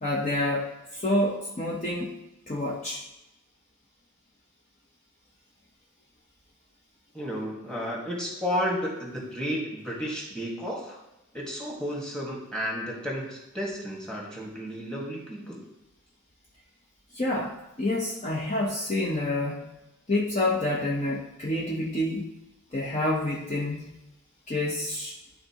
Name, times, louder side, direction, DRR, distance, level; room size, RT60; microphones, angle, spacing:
voice 1, 0.0-0.7 0.9-2.1 2.5-3.0 17.1-19.7 20.1-22.3 22.7-23.9 24.5-25.1, left 1 dB, 35° left, -4 dB, 0.8 m, -28 dB
voice 2, 7.1-11.0 11.3-15.6, equal, 5° left, -4 dB, 1.6 m, -32 dB
11.5 x 4.0 x 2.9 m, 0.94 s
head